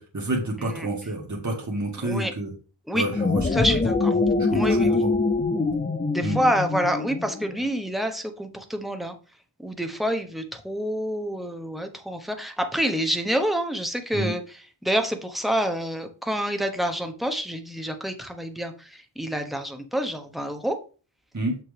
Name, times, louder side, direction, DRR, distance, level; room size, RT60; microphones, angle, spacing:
voice 1, 0.0-2.5 2.9-3.8 4.5-5.1 6.2-6.4 14.1-14.3 21.3-21.5, right 1 dB, 40° right, 0 dB, 1.6 m, -29 dB
voice 2, 2.0-2.3 2.9-3.1 3.5-4.1 4.5-5.0 6.1-9.1 9.6-14.4 14.8-18.9 19.2-20.8, equal, ahead, 6 dB, 1.0 m, -27 dB
sound 1, 3.0-7.6, left 3 dB, 20° left, 0.5 m, -24 dB
6.9 x 6.0 x 3.4 m, 0.36 s
wide cardioid pair, 55°, 43 cm